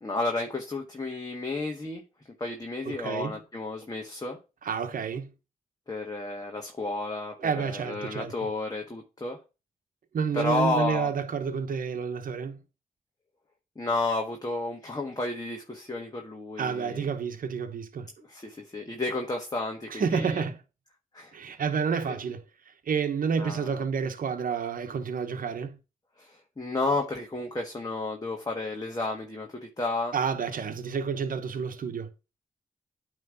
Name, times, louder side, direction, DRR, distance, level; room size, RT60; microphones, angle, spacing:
voice 1, 0.0-2.0 2.4-4.4 5.9-9.4 10.3-11.1 13.7-17.1 18.3-20.4 21.1-21.3 22.1-22.2 23.4-23.8 26.2-30.1, left 2 dB, 25° left, 1.5 m, -32 dB
voice 2, 2.8-3.4 4.6-5.3 7.4-8.3 10.1-12.6 16.6-18.1 19.9-20.6 21.3-22.4 22.9-25.8 30.1-32.1, right 6 dB, 65° right, 1.0 m, -29 dB
9.2 x 3.3 x 5.1 m
cardioid pair, 50°, 15 cm